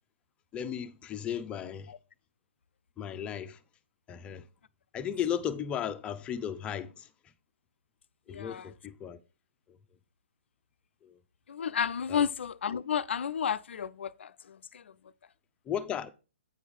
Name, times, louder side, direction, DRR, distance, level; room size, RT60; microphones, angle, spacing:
voice 1, 0.5-1.9 3.0-3.6 4.1-4.4 4.9-7.1 8.3-9.2 11.0-11.2 12.1-12.3 15.7-16.1, left 9 dB, 15° left, 0.6 m, -35 dB
voice 2, 8.3-8.7 11.5-14.9, left 8 dB, 65° left, 0.5 m, -32 dB
8.7 x 4.6 x 5.3 m
figure-of-eight pair, 130°, 7 cm